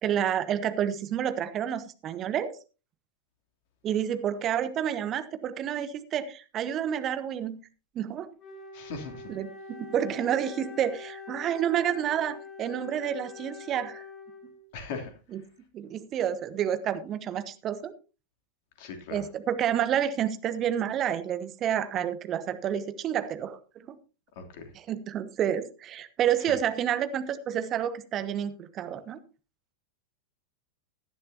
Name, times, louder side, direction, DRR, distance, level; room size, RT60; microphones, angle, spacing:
voice 1, 0.0-2.6 3.8-7.6 7.9-8.3 9.3-9.5 9.9-14.0 15.3-15.4 15.7-17.9 19.1-23.9 24.7-29.2, right 9 dB, 30° right, 12 dB, 1.2 m, -29 dB
Wind instrument woodwind instrument, 8.4-14.8, left 4 dB, 30° left, 3.9 m, -44 dB
voice 2, 8.7-9.2 14.7-15.1 18.8-19.2 24.4-24.7, left 4 dB, 50° left, 4 dB, 3.1 m, -38 dB
17.5 x 11.5 x 2.8 m, 0.32 s
figure-of-eight pair, 90°, 0 cm